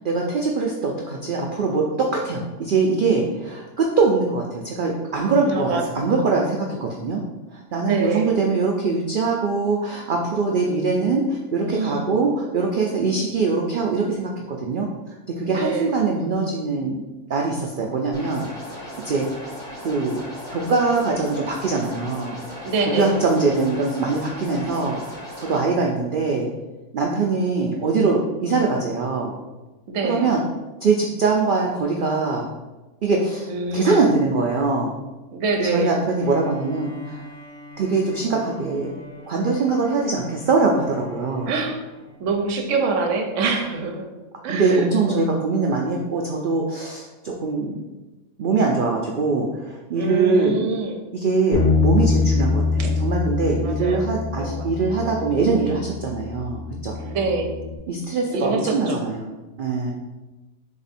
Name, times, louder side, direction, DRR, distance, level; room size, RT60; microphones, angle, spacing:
voice 1, 0.0-7.2 7.5-14.9 15.3-17.0 17.3-19.3 19.8-20.2 20.5-22.4 22.8-26.5 26.9-29.3 30.0-30.4 30.8-32.5 33.0-34.9 35.6-37.2 37.8-38.9 39.3-41.5 44.5-47.9 48.4-50.6 51.1-57.0 57.9-59.9, right 4 dB, 85° right, 0 dB, 0.4 m, -22 dB
voice 2, 5.5-5.8 7.7-8.3 11.7-12.1 15.4-15.9 22.6-23.2 29.9-30.3 33.5-34.0 35.3-36.0 41.5-41.8 42.2-44.1 44.4-45.2 49.9-51.0 52.8-52.9 53.6-54.0 54.4-54.7 57.0-57.5 58.3-59.0, right 3 dB, 65° right, 3 dB, 1.0 m, -25 dB
sound 1, 18.1-25.6, equal, 5° left, 1.3 m, -37 dB
Bowed string instrument, 36.2-42.2, left 2 dB, 85° left, 1.8 m, -41 dB
Bass guitar, 51.5-57.8, left 4 dB, 40° left, 0.8 m, -24 dB
3.6 x 3.4 x 4.1 m, 1.1 s
omnidirectional pair, 1.5 m